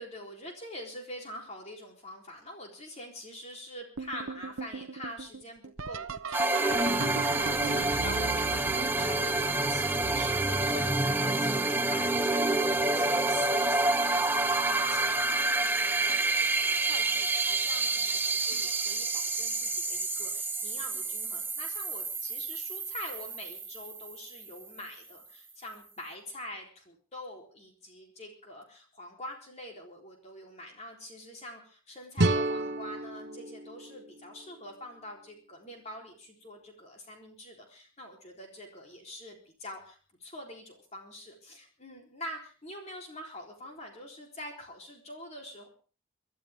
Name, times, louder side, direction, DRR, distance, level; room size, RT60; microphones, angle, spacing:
voice 1, 0.0-12.5 12.7-45.7, left 1 dB, 30° left, 1 dB, 3.8 m, -45 dB
sound 1, 4.0-11.7 12.3-12.8 13.3-13.9 15.2-15.3 16.0-16.4 18.5-18.6 20.9-21.0, right 4 dB, 75° right, 0.9 m, -39 dB
sound 2, 6.3-24.8, right 2 dB, 10° right, 1.0 m, -28 dB
sound 3, 32.2-35.1, right 2 dB, 50° right, 1.2 m, -31 dB
25.5 x 12.5 x 3.6 m, 0.38 s
head